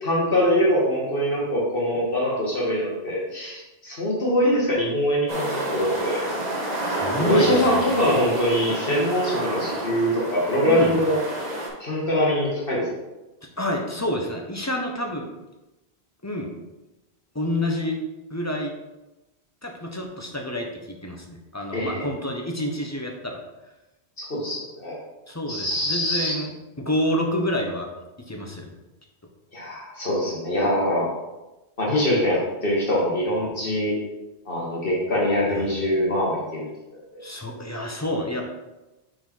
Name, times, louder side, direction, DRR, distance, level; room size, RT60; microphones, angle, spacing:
voice 1, 0.0-6.2 7.2-11.2 11.8-12.9 21.7-22.1 24.2-25.0 25.5-26.3 29.5-31.1 31.8-34.0 34.5-36.7 37.1-37.2, equal, 60° left, -4 dB, 1.7 m, -23 dB
sound 1, 5.3-11.7, right 1 dB, 40° right, 1.3 m, -29 dB
voice 2, 7.0-7.9 10.7-11.0 13.6-15.3 16.2-16.5 17.3-18.0 18.3-18.7 19.6-23.4 25.3-27.9 28.3-28.7 35.5-35.7 37.2-38.4, left 1 dB, 15° left, 1 dB, 0.8 m, -28 dB
5.8 x 4.8 x 4.4 m, 1.0 s
omnidirectional pair, 1.1 m